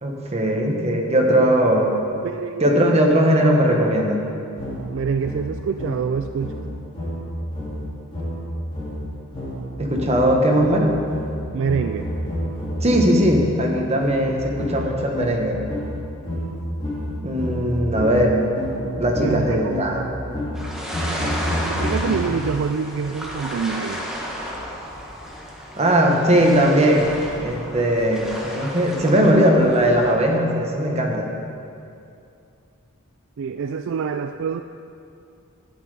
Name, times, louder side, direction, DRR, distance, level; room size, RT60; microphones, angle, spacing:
voice 1, 0.0-1.9 2.6-4.2 9.8-10.9 12.8-15.6 17.2-18.5 18.7-20.4 25.7-27.0 27.4-31.3, equal, 30° right, 0 dB, 1.3 m, -19 dB
voice 2, 2.2-3.0 4.9-6.5 11.5-12.1 18.1-18.3 19.2-19.8 21.2-21.4 21.7-24.1 33.4-34.6, right 6 dB, 60° right, 8 dB, 0.3 m, -26 dB
sound 1, 4.6-13.3 14.0-22.6, equal, 25° left, 3.0 m, -30 dB
sound 2, 20.5-30.1, equal, 5° right, 1.4 m, -33 dB
11.5 x 8.8 x 5.0 m, 2.5 s
head